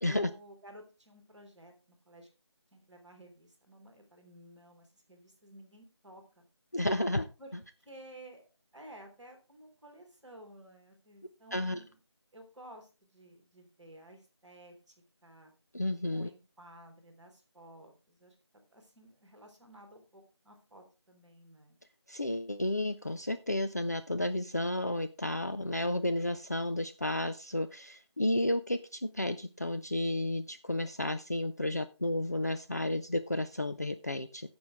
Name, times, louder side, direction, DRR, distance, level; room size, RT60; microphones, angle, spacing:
voice 1, 0.0-2.3 2.7-6.4 7.4-7.5 7.8-8.4 8.7-12.0 12.3-14.9 15.2-15.5 16.1-18.3 18.7-21.8, right 1 dB, ahead, -13 dB, 1.1 m, -54 dB
voice 2, 6.7-7.3 11.5-11.8 15.7-16.3 22.1-34.5, left 1 dB, 35° left, 10 dB, 0.4 m, -32 dB
16.0 x 6.1 x 3.5 m, 0.30 s
figure-of-eight pair, 175°, 15 cm